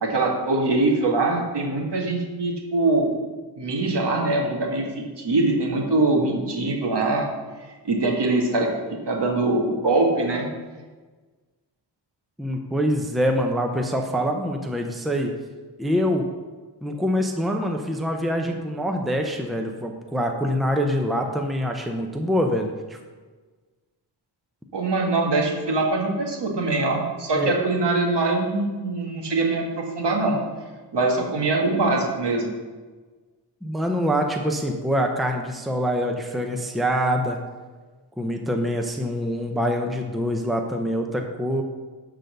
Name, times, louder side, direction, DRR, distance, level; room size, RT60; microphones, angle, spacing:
voice 1, 0.0-3.1 3.6-7.3 7.8-8.7 9.1-10.5 24.7-30.4 30.9-32.5, right 2 dB, 65° right, 0 dB, 1.8 m, -23 dB
voice 2, 12.4-15.3 15.8-16.3 16.8-23.0 27.4-27.5 33.6-37.4 38.2-41.6, equal, ahead, 3 dB, 0.7 m, -25 dB
11.0 x 3.9 x 6.7 m, 1.4 s
wide cardioid pair, 130°, 43 cm